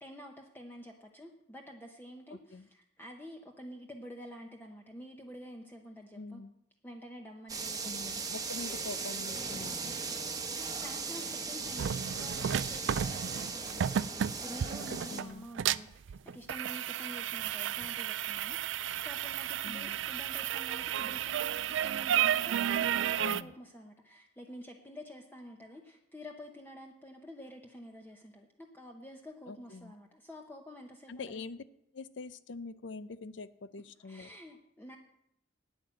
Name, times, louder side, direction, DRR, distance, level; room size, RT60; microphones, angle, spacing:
voice 1, 0.0-6.4 6.8-8.2 10.8-31.4 34.0-35.0, equal, 10° left, 2 dB, 0.8 m, -49 dB
voice 2, 2.3-2.7 6.1-6.5 7.8-10.0 14.9-15.5 19.6-20.0 23.2-23.5 29.5-29.9 31.1-31.6 31.9-34.3, left 4 dB, 75° left, 16 dB, 0.6 m, -44 dB
sound 1, 7.5-15.2, right 4 dB, 20° right, 1.0 m, -38 dB
sound 2, 11.7-23.4, right 9 dB, 80° right, 0.3 m, -32 dB
9.3 x 8.9 x 7.5 m, 0.78 s
head